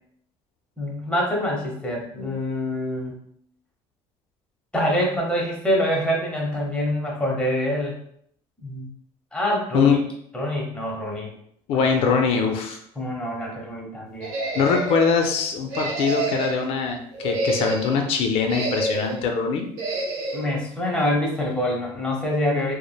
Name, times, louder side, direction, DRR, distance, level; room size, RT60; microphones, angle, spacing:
voice 1, 0.8-3.2 4.7-8.0 8.6-8.9 9.3-10.0 10.3-11.3 12.0-12.4 13.0-14.3 20.3-22.7, left 1 dB, 10° left, -2 dB, 0.7 m, -25 dB
voice 2, 11.7-12.8 14.5-19.7, left 5 dB, 60° left, 3 dB, 0.5 m, -22 dB
sound 1, 14.2-15.1 15.7-16.7 17.1-18.0 18.5-19.2 19.8-20.5, right 2 dB, 75° right, 0.7 m, -28 dB
3.2 x 2.1 x 2.2 m, 0.68 s
cardioid pair, 130°, 11 cm